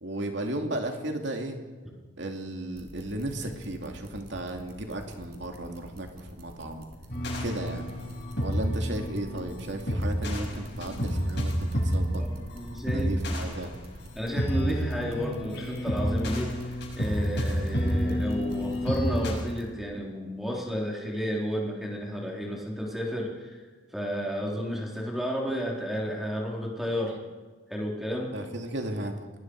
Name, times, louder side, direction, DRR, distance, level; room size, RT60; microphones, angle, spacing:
voice 1, 0.0-1.6 2.2-6.9 7.4-7.9 8.4-12.3 12.9-13.7 28.3-29.2, right 1 dB, 60° right, 3 dB, 2.6 m, -34 dB
sound 1, 2.7-19.6, equal, 45° right, 3.8 m, -47 dB
sound 2, 7.1-19.3, equal, 55° left, 6.0 m, -29 dB
voice 2, 12.2-13.4 14.1-23.6 23.9-27.2 27.7-28.4, equal, ahead, -2 dB, 3.9 m, -32 dB
27.5 x 20.5 x 4.8 m, 1.4 s
head